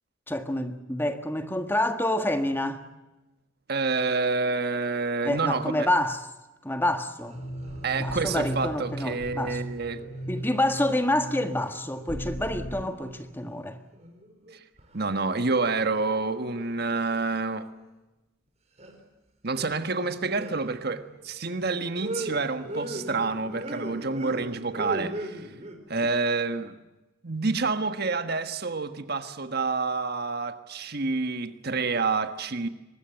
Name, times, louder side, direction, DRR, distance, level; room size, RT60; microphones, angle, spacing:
voice 1, 0.3-2.8 5.2-6.3 6.6-7.4 8.0-9.6 10.3-13.8, left 1 dB, 10° left, 1.6 m, -27 dB
voice 2, 3.7-5.9 7.8-10.0 14.5-14.6 14.9-17.7 19.4-25.5 25.9-26.8 27.2-32.7, right 3 dB, 55° right, 1.5 m, -28 dB
sound 1, 7.2-7.9 8.2-9.1 10.0-12.0 12.4-13.6 13.9-15.0 15.3-17.7 18.8-19.0 19.6-20.0 20.4-25.8, right 1 dB, 35° right, 4.7 m, -40 dB
sound 2, 7.3-12.8, right 1 dB, 60° left, 4.9 m, -37 dB
24.0 x 20.5 x 7.8 m
head